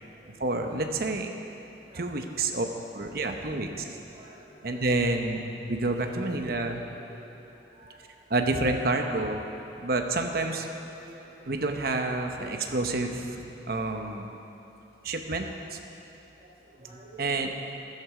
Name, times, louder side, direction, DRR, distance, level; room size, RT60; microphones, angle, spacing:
voice 1, 0.4-1.3 1.9-2.7 2.9-3.7 4.6-6.8 8.3-9.4 9.8-10.7 11.5-14.3 15.0-15.8 17.2-17.5, right 2 dB, 55° right, 4 dB, 0.9 m, -28 dB
voice 2, 1.9-2.3 2.8-3.3 3.7-4.9 5.8-8.1 8.4-9.5 10.3-11.5 12.3-12.8 16.4-16.5 16.7-17.5, right 1 dB, 35° right, -6 dB, 2.2 m, -51 dB
13.5 x 11.5 x 4.9 m, 3.0 s
head